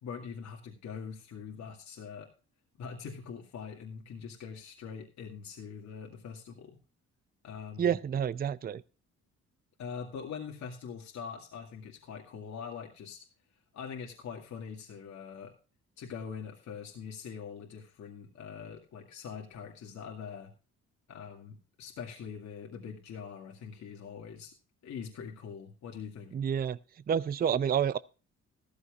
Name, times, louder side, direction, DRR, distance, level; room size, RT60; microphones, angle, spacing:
voice 1, 0.0-2.3 2.8-6.8 7.4-7.9 9.8-13.3 13.7-15.5 16.0-20.5 21.1-24.5 24.8-26.3, left 6 dB, 65° left, 2.2 m, -43 dB
voice 2, 7.8-8.8 26.3-26.8 27.1-28.0, right 8 dB, 30° right, 0.5 m, -29 dB
14.0 x 14.0 x 2.4 m
cardioid pair, 90°, 30 cm